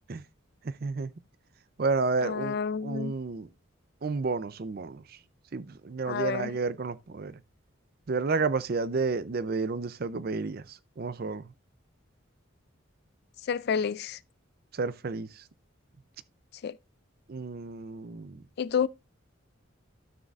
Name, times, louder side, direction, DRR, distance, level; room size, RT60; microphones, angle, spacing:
voice 1, 0.8-1.1 1.8-2.6 2.8-3.5 4.0-5.0 5.5-7.4 8.1-11.4 14.8-15.3 17.3-18.4, right 4 dB, 50° right, 0.5 m, -31 dB
voice 2, 2.2-3.1 6.1-6.6 13.4-14.2 16.6-16.8 18.6-18.9, left 6 dB, 55° left, 0.3 m, -29 dB
12.5 x 6.4 x 2.4 m
head